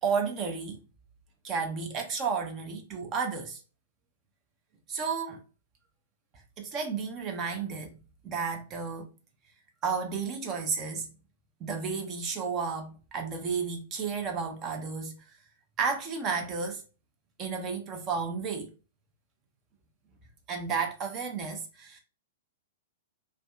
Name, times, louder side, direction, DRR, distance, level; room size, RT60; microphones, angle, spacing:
voice 1, 0.0-0.8 1.4-3.6 4.9-5.4 6.6-8.0 8.2-9.1 9.8-11.1 11.6-15.2 15.8-16.8 17.4-18.7 20.5-22.0, right 5 dB, 30° right, 0.6 m, -32 dB
2.5 x 2.2 x 2.4 m
figure-of-eight pair, 105°, 0 cm